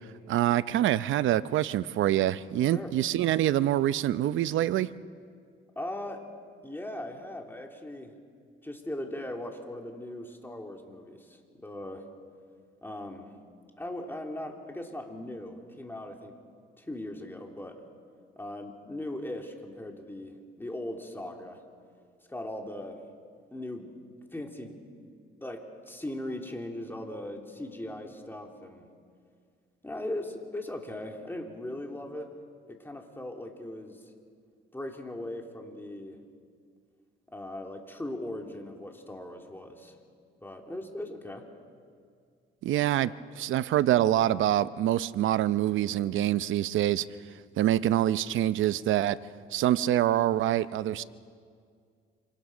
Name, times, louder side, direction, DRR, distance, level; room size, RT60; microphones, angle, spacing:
voice 1, 0.3-4.9 42.6-47.1 47.6-49.2 49.5-51.0, right 12 dB, 80° right, 15 dB, 0.7 m, -25 dB
voice 2, 5.7-6.3 6.6-8.1 8.6-12.0 12.8-13.3 13.8-16.3 16.8-17.8 18.3-21.6 22.3-23.0 23.5-23.9 24.3-24.8 25.4-28.9 29.8-32.3 32.7-34.0 34.7-36.2 37.3-40.0 40.4-41.5, left 1 dB, 10° left, 2 dB, 3.3 m, -39 dB
27.0 x 26.0 x 6.3 m, 2.1 s
cardioid pair, 90°, 20 cm